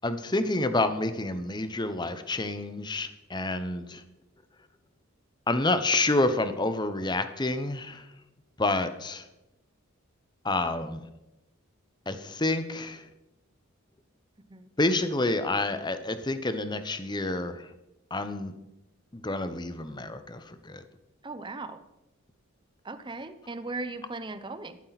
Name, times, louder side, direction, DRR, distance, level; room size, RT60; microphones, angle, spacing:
voice 1, 0.0-4.0 5.5-8.1 8.6-9.3 10.4-11.1 12.1-13.1 14.8-17.7 18.1-18.6 19.1-20.8, left 2 dB, 20° left, 11 dB, 0.8 m, -28 dB
voice 2, 21.2-21.8 22.8-24.8, right 3 dB, 20° right, 11 dB, 0.7 m, -38 dB
13.5 x 12.0 x 4.1 m, 0.94 s
head